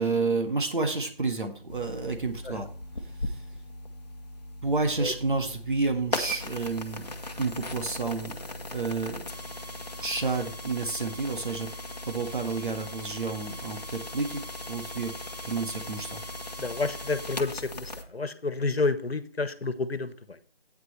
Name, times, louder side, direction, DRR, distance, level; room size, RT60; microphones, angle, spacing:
voice 1, 0.0-2.7 3.2-3.4 4.6-8.4 8.7-9.2 10.0-11.7 12.1-14.4 14.7-15.2 15.4-16.2, right 3 dB, 55° right, 5 dB, 1.8 m, -30 dB
sound 1, 1.7-18.0, left 2 dB, 45° left, 1.1 m, -38 dB
voice 2, 16.6-20.1, left 3 dB, 90° left, 13 dB, 1.3 m, -29 dB
12.0 x 9.2 x 3.3 m, 0.43 s
figure-of-eight pair, 175°, 30 cm